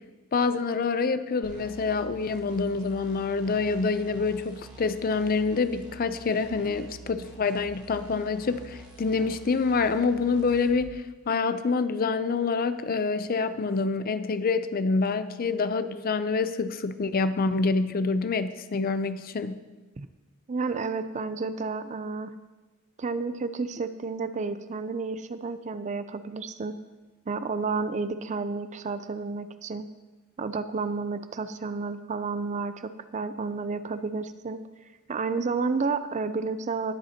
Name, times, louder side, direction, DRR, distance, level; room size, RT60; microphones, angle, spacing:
voice 1, 0.3-19.6, left 4 dB, 45° left, 12 dB, 0.5 m, -26 dB
sound 1, 1.4-10.9, right 3 dB, 20° right, 1.6 m, -48 dB
voice 2, 20.5-22.3 23.0-26.8 27.3-29.9 30.4-34.6 35.1-36.9, right 4 dB, 35° right, 12 dB, 0.4 m, -31 dB
19.5 x 7.8 x 2.9 m, 1.2 s
head